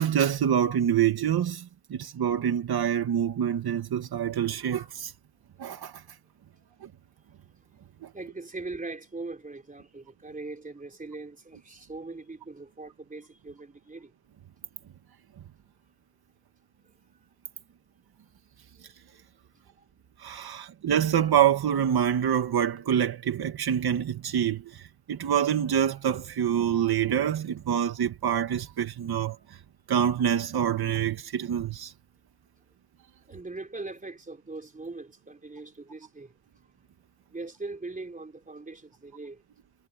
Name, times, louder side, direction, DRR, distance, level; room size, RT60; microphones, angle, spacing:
voice 1, 0.0-5.1 5.6-6.0 6.8-6.9 8.0-8.1 20.2-29.4 29.9-31.9, right 9 dB, 70° right, 2.2 m, -26 dB
voice 2, 8.1-14.1 33.3-36.3 37.3-39.4, right 3 dB, 20° right, 4.2 m, -40 dB
cardioid pair, 115°, 38 cm